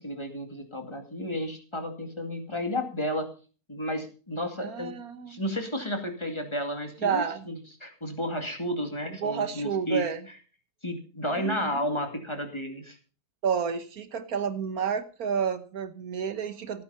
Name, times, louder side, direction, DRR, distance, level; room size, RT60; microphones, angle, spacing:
voice 1, 0.0-3.3 3.7-4.9 5.3-10.0 10.8-13.0, equal, 20° left, 4 dB, 2.3 m, -32 dB
voice 2, 4.6-5.4 7.0-7.5 9.2-10.2 11.4-11.7 13.4-16.8, right 7 dB, 75° right, 11 dB, 1.6 m, -30 dB
15.5 x 9.3 x 5.5 m, 0.38 s
omnidirectional pair, 1.6 m